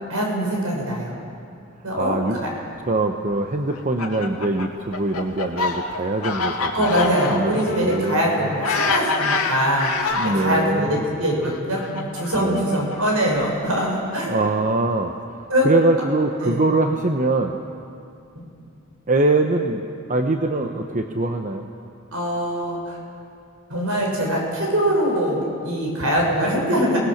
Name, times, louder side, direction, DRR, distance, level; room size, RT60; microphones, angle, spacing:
voice 1, 0.1-1.1 1.8-2.5 6.7-14.4 15.5-15.7 16.4-16.6 18.3-18.4 22.1-23.0 23.7-27.0, equal, 75° right, -1 dB, 6.8 m, -23 dB
voice 2, 2.0-2.4 2.9-7.5 7.8-8.6 10.1-11.1 12.3-12.6 14.3-15.1 15.6-17.6 19.1-19.8 20.1-21.7, right 2 dB, 35° right, 4 dB, 0.9 m, -23 dB
Fowl, 3.7-10.6 11.4-13.5, left 4 dB, 85° left, 2.3 m, -26 dB
29.0 x 19.5 x 6.6 m, 2.5 s
head